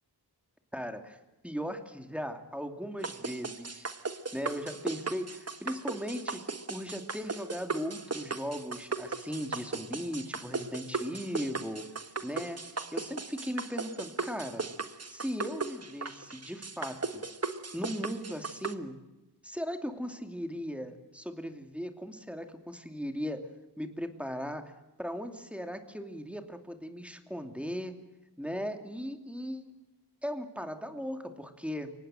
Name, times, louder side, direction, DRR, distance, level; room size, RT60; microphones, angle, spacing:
voice 1, 0.7-3.9 4.3-6.4 6.7-12.6 12.9-14.6 15.0-17.2 17.7-19.0 19.4-23.5 23.8-24.7 25.0-28.0 28.4-29.7 30.2-31.9, equal, 5° right, 6 dB, 2.7 m, -38 dB
sound 1, 3.0-18.7, right 4 dB, 40° right, 1.5 m, -37 dB
24.0 x 18.5 x 7.8 m, 1.0 s
wide cardioid pair, 60°, 40 cm